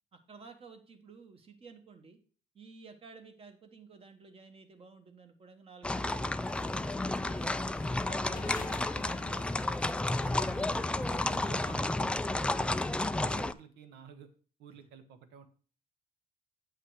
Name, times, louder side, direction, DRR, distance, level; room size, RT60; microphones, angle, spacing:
voice 1, 0.1-2.2 2.5-6.8 7.3-9.7, right 4 dB, 35° right, 6 dB, 1.4 m, -53 dB
sound 1, 5.8-13.5, left 2 dB, 5° left, 0.3 m, -32 dB
sound 2, 6.4-11.8, left 9 dB, 50° left, 0.7 m, -50 dB
voice 2, 7.2-7.5 10.4-14.3 14.6-15.5, right 7 dB, 85° right, 9 dB, 1.2 m, -51 dB
8.0 x 5.7 x 4.8 m, 0.40 s
cardioid pair, 110°, 17 cm